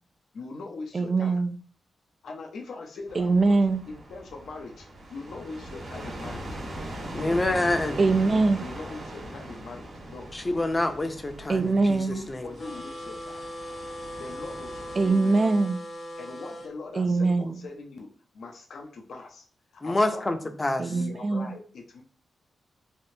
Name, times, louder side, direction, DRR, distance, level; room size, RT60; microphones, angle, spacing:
voice 1, 0.3-1.4 2.2-3.6 3.9-6.5 7.1-7.4 8.6-10.3 12.1-13.5 14.2-15.4 16.2-18.1 18.3-19.4 19.8-20.3 20.9-22.0, left 3 dB, 75° left, 1 dB, 0.5 m, -41 dB
voice 2, 0.9-1.6 3.2-3.8 8.0-8.6 11.5-12.2 15.0-15.8 17.0-17.6 20.8-21.5, right 3 dB, 45° right, 11 dB, 0.3 m, -23 dB
sound 1, 3.1-15.1, right 1 dB, 70° right, 1.2 m, -40 dB
voice 3, 7.1-8.0 10.3-12.5 19.8-20.9, left 2 dB, 25° left, 6 dB, 0.5 m, -27 dB
sound 2, 12.6-16.7, equal, 60° left, 0.9 m, -39 dB
3.4 x 2.4 x 2.7 m, 0.44 s
cardioid pair, 60°, 0 cm